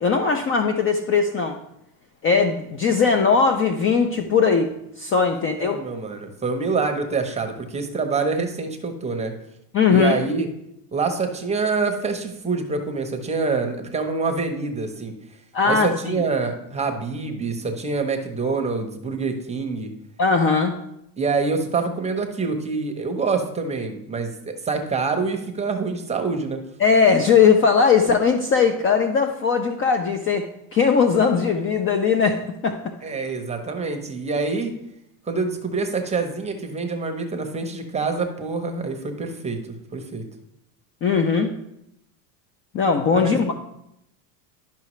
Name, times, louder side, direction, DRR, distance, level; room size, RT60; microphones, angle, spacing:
voice 1, 0.0-1.6 2.2-4.7 5.0-5.8 9.7-10.2 15.5-15.9 20.2-20.8 26.8-32.9 41.0-41.5 42.7-43.5, left 5 dB, 30° left, 6 dB, 0.5 m, -19 dB
voice 2, 5.3-9.3 9.9-10.5 10.9-15.1 15.6-19.9 21.2-26.6 33.0-34.7 35.3-39.6 39.9-40.2 43.2-43.5, right 4 dB, 15° right, 5 dB, 0.8 m, -26 dB
11.0 x 5.8 x 3.1 m, 0.81 s
supercardioid pair, 125°, 48 cm